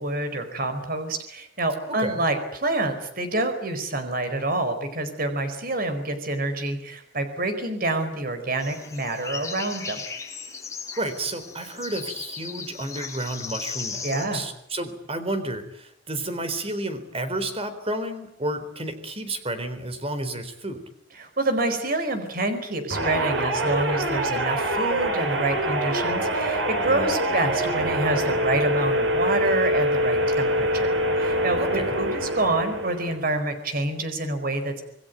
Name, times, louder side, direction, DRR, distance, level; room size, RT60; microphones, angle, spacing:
voice 1, 0.0-10.0 14.0-14.4 21.2-34.8, right 2 dB, 50° right, 8 dB, 4.7 m, -27 dB
voice 2, 1.9-2.2 11.0-20.8 31.6-32.0, right 1 dB, 30° right, 10 dB, 4.0 m, -31 dB
sound 1, 8.6-14.3, left 5 dB, 15° left, 5.9 m, -36 dB
sound 2, 22.9-33.3, right 1 dB, 85° right, 5.9 m, -25 dB
27.0 x 20.5 x 9.4 m, 0.73 s
head